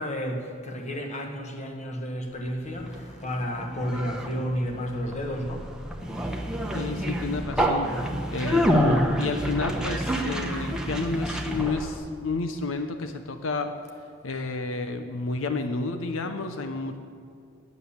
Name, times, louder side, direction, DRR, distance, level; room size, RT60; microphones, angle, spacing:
voice 1, 0.0-5.7, equal, 35° left, 3 dB, 1.3 m, -31 dB
Conversation, 2.5-12.0, equal, 5° right, 1.0 m, -28 dB
voice 2, 6.7-7.9 8.3-13.7 14.2-17.0, left 3 dB, 85° left, 8 dB, 0.6 m, -31 dB
9.8 x 9.4 x 7.1 m, 2.4 s
head